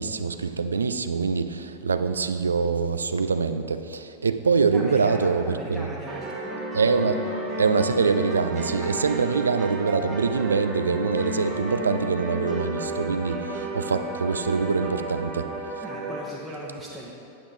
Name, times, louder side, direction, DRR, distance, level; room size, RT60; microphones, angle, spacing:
voice 1, 0.0-5.4 5.7-5.9 6.7-7.2 7.6-15.5, right 5 dB, 75° right, 10 dB, 0.4 m, -24 dB
voice 2, 4.7-6.3 15.8-17.1, right 1 dB, 5° right, -7 dB, 1.0 m, -37 dB
sound 1, 6.1-16.2, right 1 dB, 25° right, 1.4 m, -32 dB
8.5 x 8.5 x 3.4 m, 2.8 s
figure-of-eight pair, 90°, 0 cm